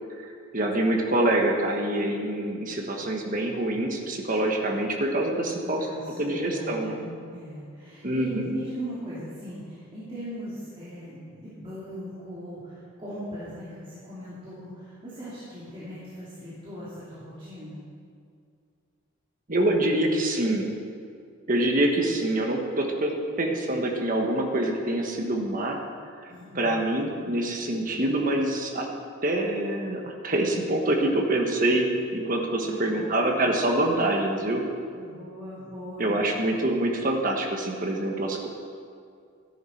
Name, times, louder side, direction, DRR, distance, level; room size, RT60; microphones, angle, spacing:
voice 1, 0.2-5.9 6.2-7.0 8.0-8.5 19.5-20.7 21.5-25.8 26.5-28.9 29.2-34.6 36.0-38.5, right 1 dB, 40° right, 1 dB, 1.4 m, -25 dB
voice 2, 5.6-17.8 26.3-26.7 32.6-33.2 34.9-36.1, equal, 25° right, -10 dB, 2.8 m, -39 dB
14.0 x 10.5 x 4.4 m, 2.3 s
head